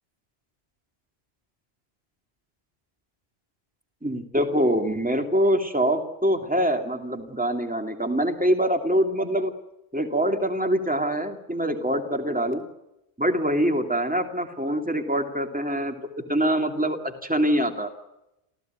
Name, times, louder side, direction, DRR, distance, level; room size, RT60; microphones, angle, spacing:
voice 1, 4.0-9.5 9.9-12.6 13.2-16.0 16.3-17.9, equal, 10° right, 5 dB, 2.9 m, -24 dB
27.0 x 16.5 x 9.3 m, 0.88 s
omnidirectional pair, 1.1 m